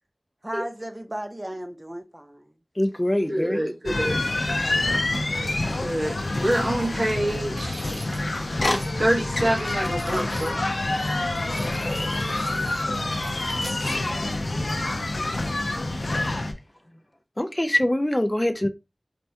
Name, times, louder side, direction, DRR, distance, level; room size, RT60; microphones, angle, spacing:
voice 1, 0.4-2.6 13.3-14.5, right 1 dB, 30° right, 0.6 m, -37 dB
voice 2, 2.8-3.6 17.4-18.7, left 1 dB, 25° left, 0.3 m, -23 dB
voice 3, 3.3-4.2 5.8-7.9 9.0-10.8, right 1 dB, 90° right, 1.1 m, -26 dB
sound 1, 3.9-16.5, left 2 dB, 90° left, 0.4 m, -27 dB
sound 2, 7.5-8.9 9.2-10.5 11.3-14.0, right 1 dB, 60° right, 1.2 m, -43 dB
4.3 x 2.2 x 2.7 m
wide cardioid pair, 40°, 0 cm